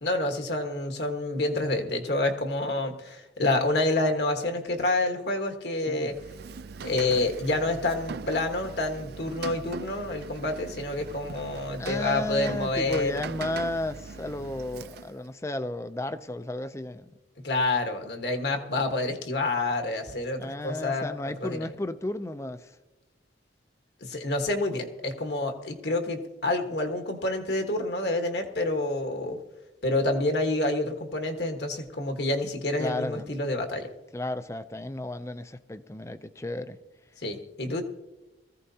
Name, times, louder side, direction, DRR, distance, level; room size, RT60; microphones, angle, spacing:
voice 1, 0.0-6.1 6.8-13.1 17.4-21.7 24.0-29.4 29.8-33.9 37.2-37.8, left 2 dB, 65° left, 5 dB, 1.4 m, -28 dB
Rain, 6.0-15.3, right 5 dB, 55° right, 0.4 m, -41 dB
voice 2, 11.8-17.1 20.4-22.8 32.8-33.3 34.1-36.8, left 1 dB, 15° left, 11 dB, 0.5 m, -33 dB
20.5 x 15.0 x 2.8 m, 1.1 s
head